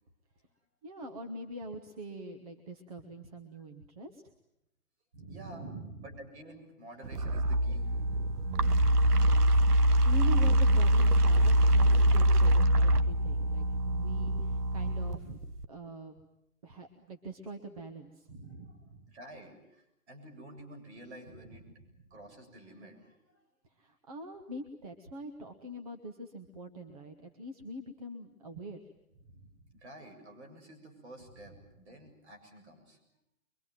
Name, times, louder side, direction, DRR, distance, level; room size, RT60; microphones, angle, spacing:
voice 1, 0.8-4.2 5.1-6.0 8.5-16.1 16.6-19.1 23.8-28.8 29.3-29.5, right 1 dB, 25° right, 6 dB, 1.2 m, -44 dB
voice 2, 5.3-5.7 6.0-8.2 18.5-18.8 19.1-21.7 22.1-23.4 29.7-33.0, right 1 dB, 45° right, 6 dB, 7.4 m, -51 dB
sound 1, 7.0-15.7, right 1 dB, 90° right, 1.2 m, -24 dB
24.0 x 23.5 x 9.2 m, 0.82 s
hypercardioid pair, 165°, 45 cm